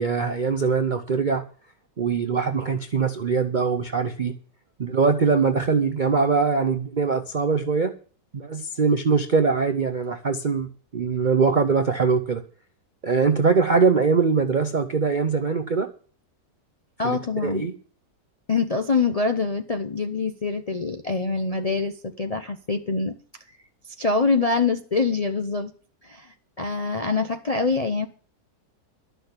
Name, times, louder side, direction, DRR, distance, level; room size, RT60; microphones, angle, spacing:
voice 1, 0.0-1.4 2.0-4.3 4.8-7.9 8.3-12.4 13.0-15.9 17.0-17.7, right 5 dB, 50° right, 7 dB, 0.5 m, -22 dB
voice 2, 17.0-17.7 18.5-23.1 23.8-25.7 26.0-28.1, left 4 dB, 55° left, 5 dB, 0.4 m, -25 dB
12.0 x 6.2 x 8.1 m, 0.42 s
omnidirectional pair, 1.9 m